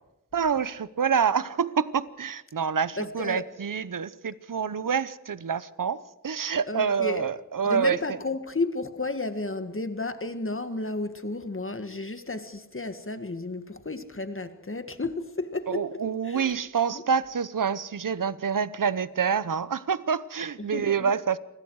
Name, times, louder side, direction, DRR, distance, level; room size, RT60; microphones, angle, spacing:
voice 1, 0.3-8.2 15.7-21.4, right 6 dB, 75° right, 0.9 m, -27 dB
voice 2, 3.0-3.4 6.7-7.2 7.7-16.0 16.2-16.5 16.9-17.0 20.6-21.1, left 2 dB, 40° left, 1.8 m, -32 dB
28.0 x 20.5 x 4.8 m
wide cardioid pair, 50°, 33 cm